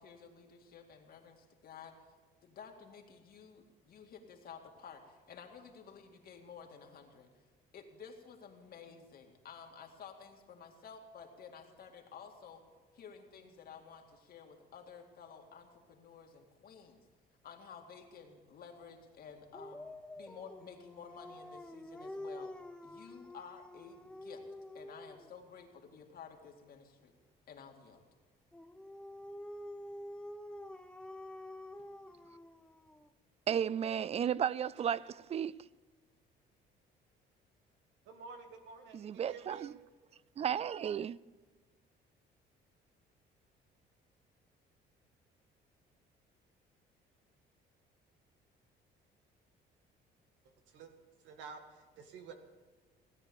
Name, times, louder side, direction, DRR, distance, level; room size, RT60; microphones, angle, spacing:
voice 1, 0.0-1.9 2.4-7.4 7.7-12.6 12.9-17.0 17.4-19.9 20.2-22.5 22.8-24.4 24.7-27.1 27.5-28.0, left 6 dB, 55° left, 2.2 m, -53 dB
Dog, 19.5-25.3 28.5-33.1, left 1 dB, 5° left, 0.7 m, -48 dB
voice 2, 33.5-35.6 38.9-39.7 40.4-41.2, right 8 dB, 35° right, 0.4 m, -34 dB
voice 3, 38.1-39.7 50.7-51.0 51.2-52.4, right 5 dB, 85° right, 1.9 m, -50 dB
17.0 x 9.7 x 7.1 m
cardioid pair, 120°, 19 cm